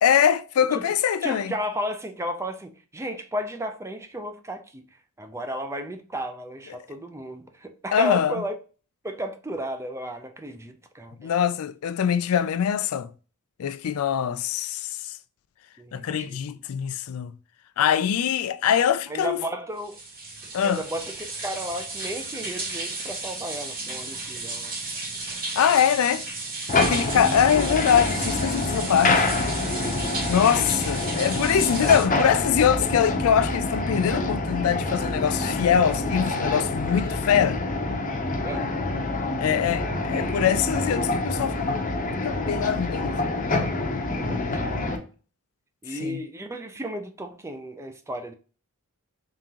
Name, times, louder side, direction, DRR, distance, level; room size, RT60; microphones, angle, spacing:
voice 1, 0.0-1.5 7.9-8.4 11.2-13.1 13.6-15.2 15.9-17.3 17.8-19.4 20.5-20.8 25.6-26.2 26.7-29.3 30.2-37.6 39.4-41.7 42.2-43.2 46.0-46.2, left 8 dB, 70° left, 0.4 m, -23 dB
voice 2, 1.2-4.9 5.2-8.5 9.0-11.3 15.8-16.4 19.1-20.0 20.6-24.7 30.6-30.7 38.4-38.7 39.3-39.6 44.1-45.1 45.8-48.3, equal, 10° right, 0.4 m, -34 dB
sound 1, 19.8-32.1, right 3 dB, 45° right, 2.0 m, -34 dB
sound 2, 26.7-45.0, left 2 dB, 35° left, 0.7 m, -26 dB
3.8 x 3.6 x 2.8 m
head